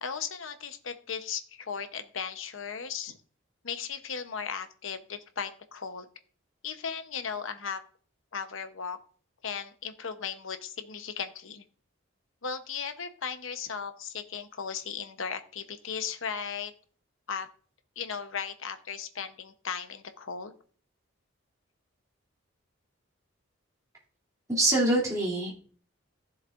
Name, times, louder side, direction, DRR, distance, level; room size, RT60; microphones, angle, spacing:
voice 1, 0.0-3.2 3.6-6.1 6.6-7.8 8.3-9.0 9.4-11.6 12.4-16.7 17.3-17.5 18.0-20.5, left 6 dB, 80° left, 9 dB, 0.9 m, -36 dB
voice 2, 24.5-25.5, right 2 dB, 15° right, -7 dB, 2.8 m, -25 dB
15.5 x 7.3 x 2.5 m, 0.43 s
head